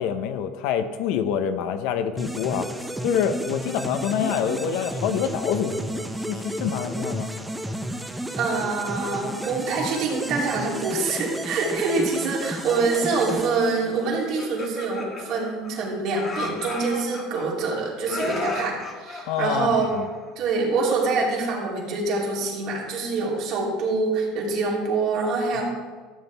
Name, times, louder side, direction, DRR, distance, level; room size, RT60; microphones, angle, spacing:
voice 1, 0.0-2.7 3.0-7.3 19.3-20.1, left 8 dB, 70° left, 9 dB, 0.8 m, -26 dB
sound 1, 2.2-14.2, right 1 dB, 5° right, 0.6 m, -32 dB
voice 2, 8.4-19.9 20.4-25.6, right 4 dB, 60° right, -3 dB, 2.9 m, -25 dB
Laughter, 14.2-15.9 16.2-17.7 18.1-20.3, left 2 dB, 30° left, 1.6 m, -34 dB
13.0 x 7.8 x 3.4 m, 1.5 s
supercardioid pair, 125°, 0 cm